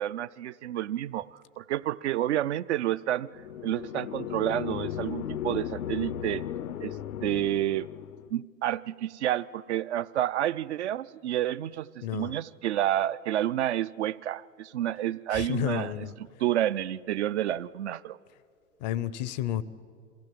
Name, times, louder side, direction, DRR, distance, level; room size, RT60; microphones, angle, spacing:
voice 1, 0.0-3.3 3.6-6.4 6.8-7.0 7.2-7.9 8.3-15.9 16.4-18.2, right 12 dB, 55° right, 17 dB, 0.5 m, -29 dB
sound 1, 3.3-8.3, left 10 dB, 80° left, 0.6 m, -36 dB
voice 2, 12.0-12.4 15.3-16.1 18.8-19.6, left 12 dB, 30° left, 18 dB, 0.5 m, -31 dB
23.0 x 15.5 x 7.6 m, 2.3 s
hypercardioid pair, 110°, 43 cm